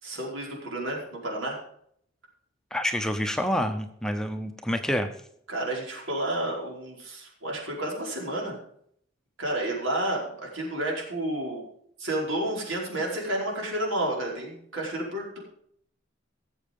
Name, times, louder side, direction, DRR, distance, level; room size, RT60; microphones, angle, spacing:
voice 1, 0.0-1.6 5.5-8.6 9.4-11.6 12.0-15.4, right 1 dB, 85° right, -2 dB, 4.8 m, -31 dB
voice 2, 2.7-5.1, equal, 5° left, 6 dB, 0.8 m, -27 dB
16.5 x 7.7 x 5.4 m, 0.67 s
head